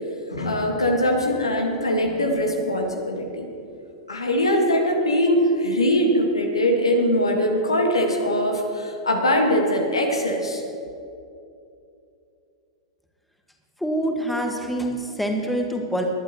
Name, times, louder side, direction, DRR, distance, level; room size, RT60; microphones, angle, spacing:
voice 1, 0.3-3.5 4.1-10.6, equal, 85° left, 2 dB, 1.5 m, -22 dB
voice 2, 13.8-16.0, right 1 dB, 5° left, 2 dB, 1.5 m, -25 dB
19.5 x 11.0 x 3.0 m, 2.7 s
figure-of-eight pair, 100°, 3 cm